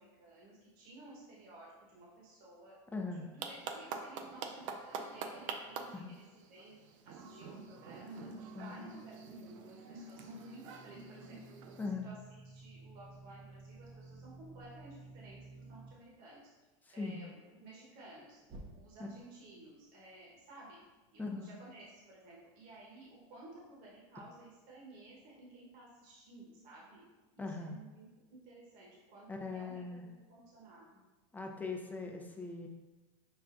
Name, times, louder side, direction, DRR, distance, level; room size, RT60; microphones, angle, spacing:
voice 1, 0.0-2.8 3.1-6.7 7.0-11.4 11.9-16.5 16.9-18.4 18.7-20.8 21.1-27.0 27.5-31.0, right 2 dB, 60° right, -5 dB, 1.2 m, -55 dB
voice 2, 2.9-3.3 5.9-6.1 8.5-8.7 11.8-12.1 17.0-17.2 21.2-21.5 27.4-27.8 29.3-30.1 31.3-32.7, left 3 dB, 10° left, 2 dB, 0.5 m, -40 dB
sound 1, 3.4-11.9, right 4 dB, 80° right, 0.4 m, -46 dB
sound 2, 10.1-15.9 18.4-19.2, right 2 dB, 35° right, 0.6 m, -54 dB
6.2 x 2.2 x 2.5 m, 1.2 s
supercardioid pair, 110°, 16 cm